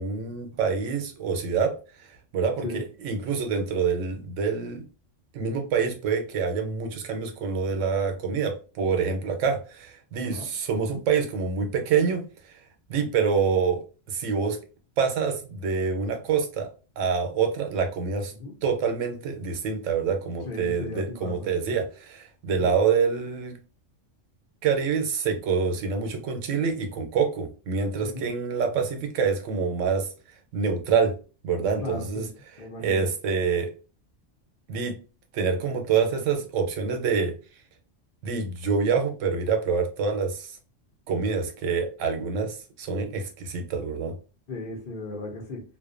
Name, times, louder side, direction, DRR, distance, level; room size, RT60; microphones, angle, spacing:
voice 1, 0.0-1.7 2.3-4.8 5.3-12.2 12.9-14.6 15.0-16.7 17.0-18.3 18.6-23.6 24.6-30.1 30.5-31.1 31.4-33.7 34.7-34.9 35.3-37.3 38.2-40.5 41.1-44.1, right 5 dB, 90° right, 1.0 m, -26 dB
voice 2, 20.5-21.3 22.6-22.7 28.0-28.3 31.8-32.3 32.6-33.0 44.5-45.6, left 2 dB, 55° left, 0.7 m, -36 dB
2.5 x 2.1 x 2.4 m
omnidirectional pair, 1.3 m